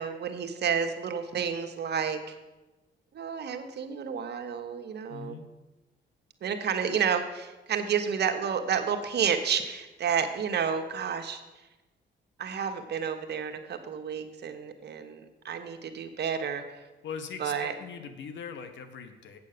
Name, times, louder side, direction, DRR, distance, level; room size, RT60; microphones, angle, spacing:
voice 1, 0.0-2.4 3.1-5.4 6.4-11.4 12.4-16.9 17.4-17.7, right 7 dB, 55° right, 6 dB, 1.2 m, -30 dB
voice 2, 5.1-5.5 17.0-19.4, left 6 dB, 70° left, 9 dB, 1.2 m, -41 dB
8.3 x 7.7 x 6.7 m, 1.1 s
cardioid pair, 90°, 20 cm